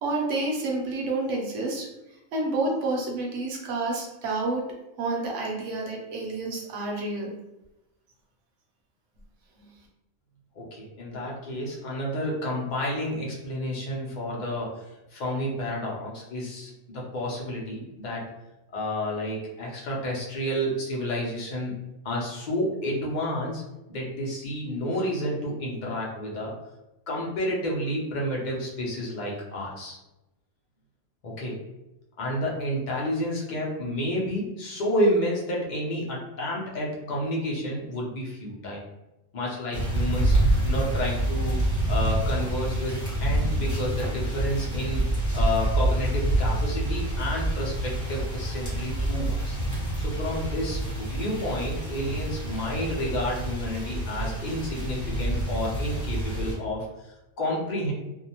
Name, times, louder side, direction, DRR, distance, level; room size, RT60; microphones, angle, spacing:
voice 1, 0.0-1.9 2.3-4.7 5.0-7.3, right 2 dB, 70° right, -1 dB, 0.9 m, -29 dB
voice 2, 10.5-14.8 15.1-18.3 18.7-21.7 22.0-23.6 23.9-26.6 27.1-30.0 31.2-31.6 32.2-38.8 39.3-40.4 40.6-41.6 41.9-45.0 45.3-49.6 49.9-57.9, equal, 50° left, -3 dB, 0.6 m, -30 dB
sound 1, 39.7-56.5, right 1 dB, 15° left, 0.8 m, -27 dB
2.6 x 2.0 x 2.8 m, 0.94 s
omnidirectional pair, 1.4 m